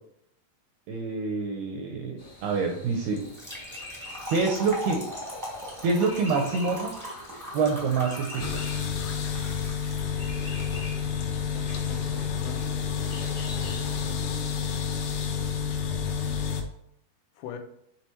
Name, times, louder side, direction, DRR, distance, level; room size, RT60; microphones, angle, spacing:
voice 1, 0.9-3.2 4.3-5.0 5.8-6.9 7.5-8.6, right 4 dB, 75° right, 2 dB, 2.4 m, -26 dB
sound 1, 2.2-14.1, left 1 dB, 40° left, 0.5 m, -46 dB
Trickle dribble / Fill (with liquid), 3.2-10.6, equal, 15° right, 0.5 m, -39 dB
sound 2, 8.4-16.6, left 7 dB, 70° left, 2.5 m, -29 dB
voice 2, 10.0-12.7 13.6-14.3 17.4-17.6, left 8 dB, 90° left, 4 dB, 3.3 m, -45 dB
9.9 x 3.5 x 4.5 m, 0.73 s
omnidirectional pair, 5.4 m